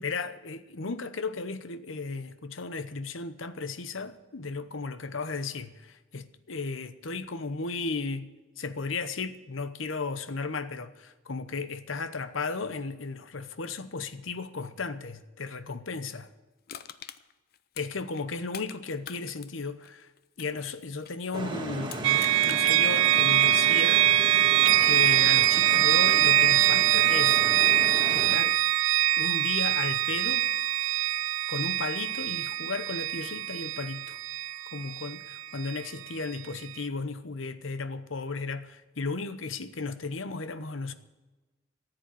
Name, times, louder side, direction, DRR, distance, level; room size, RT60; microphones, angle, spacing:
voice 1, 0.0-8.3 8.6-16.3 17.8-20.1 20.4-24.4 24.8-27.4 28.1-28.6 29.2-30.5 31.5-34.2 34.7-40.9, left 4 dB, 75° left, 0.9 m, -35 dB
Crushing, 16.7-18.8 19.0-21.3 21.8-22.8 23.3-23.4, left 10 dB, 50° left, 0.6 m, -44 dB
sound 1, 21.3-28.4, right 1 dB, 25° right, 1.6 m, -36 dB
sound 2, 22.0-35.8, right 13 dB, 80° right, 0.4 m, -23 dB
14.0 x 8.0 x 9.0 m
head